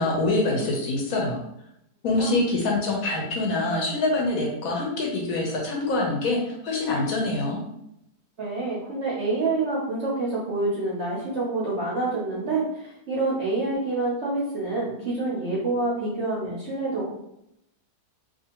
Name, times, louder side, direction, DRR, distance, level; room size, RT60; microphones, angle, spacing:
voice 1, 0.0-1.4 2.0-7.6, left 2 dB, 70° left, -1 dB, 0.9 m, -25 dB
voice 2, 8.4-17.1, right 2 dB, 60° right, -6 dB, 0.7 m, -27 dB
2.6 x 2.4 x 2.8 m, 0.80 s
omnidirectional pair, 1.8 m